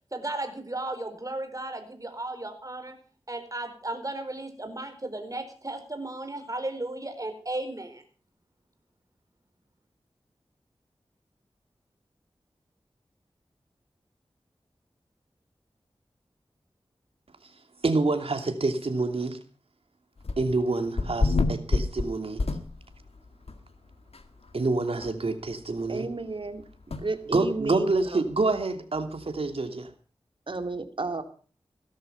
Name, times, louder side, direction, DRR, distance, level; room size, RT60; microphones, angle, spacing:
voice 1, 0.1-3.0 3.3-8.0, right 2 dB, 35° right, 7 dB, 4.6 m, -35 dB
voice 2, 17.8-19.4 20.4-22.4 24.5-26.1 27.3-29.9, right 3 dB, 75° right, 7 dB, 2.8 m, -27 dB
sound 1, 20.2-20.6 21.0-23.1 23.5-23.6 24.1-24.2 24.5-24.6 25.0-25.1 26.9-27.0, left 3 dB, 80° left, 1.9 m, -27 dB
voice 3, 25.9-26.6 26.9-28.2 30.5-31.2, right 3 dB, 55° right, 8 dB, 2.5 m, -32 dB
17.5 x 13.0 x 5.3 m, 0.40 s
wide cardioid pair, 60°, 10 cm